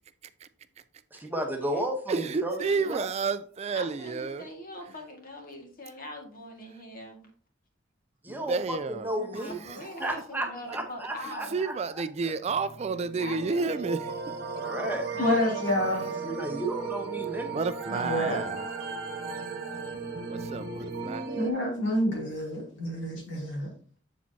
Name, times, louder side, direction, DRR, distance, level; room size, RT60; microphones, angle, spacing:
voice 1, 1.1-2.6 2.9-3.1 8.2-8.8 9.0-9.5 10.0-11.7 12.2-12.3 14.6-15.0 16.2-17.6, right 1 dB, 10° right, 1.0 m, -33 dB
voice 2, 2.1-4.5 8.3-9.1 9.6-9.8 11.5-14.3 16.4-16.6 17.5-18.6 20.3-21.3, right 4 dB, 35° right, 0.3 m, -31 dB
voice 3, 2.6-3.0 3.7-7.3 9.1-11.6 13.2-13.9 15.1-16.1 17.9-18.4, left 1 dB, 50° left, 1.9 m, -42 dB
sound 1, 12.5-21.5, right 4 dB, 50° right, 1.1 m, -36 dB
voice 4, 15.2-16.0 17.9-18.4 21.3-23.7, left 1 dB, 70° left, 2.9 m, -28 dB
7.3 x 7.3 x 2.8 m
head